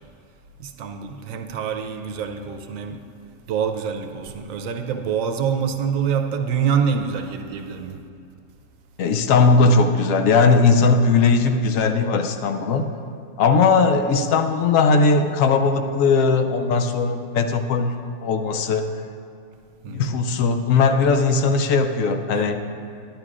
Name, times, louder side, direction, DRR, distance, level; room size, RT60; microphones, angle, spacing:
voice 1, 0.6-3.0 3.5-8.0 19.8-20.2 22.3-22.6, right 7 dB, 75° right, 6 dB, 1.0 m, -26 dB
voice 2, 9.0-12.9 13.4-17.9 18.2-18.9 19.9-22.6, left 4 dB, 75° left, 6 dB, 1.0 m, -18 dB
11.5 x 10.5 x 2.4 m, 2.5 s
omnidirectional pair, 1.4 m